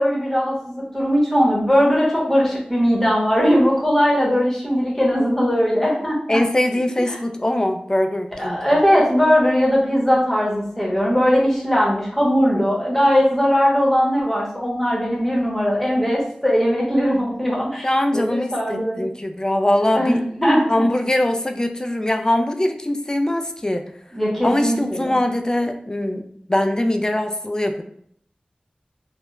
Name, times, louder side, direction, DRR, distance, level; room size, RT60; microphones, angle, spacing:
voice 1, 0.0-6.4 8.4-17.9 18.1-19.0 19.9-20.8 24.1-25.1, equal, 10° left, -4 dB, 0.9 m, -19 dB
voice 2, 6.3-8.8 17.8-20.2 20.7-23.8 24.4-26.2 26.5-27.8, left 1 dB, 25° left, 6 dB, 0.3 m, -22 dB
2.3 x 2.0 x 3.0 m, 0.66 s
wide cardioid pair, 55°, 3 cm